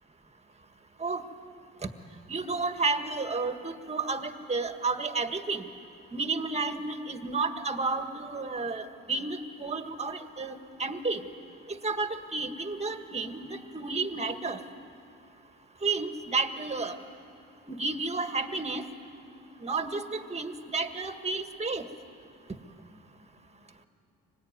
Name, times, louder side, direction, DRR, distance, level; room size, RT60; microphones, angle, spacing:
voice 1, 2.3-5.6 6.1-11.2 11.8-14.6 15.8-17.0 17.7-18.8 19.6-21.8, right 3 dB, 20° right, 7 dB, 1.8 m, -31 dB
25.0 x 20.0 x 9.6 m, 2.5 s
cardioid pair, 90°, 30 cm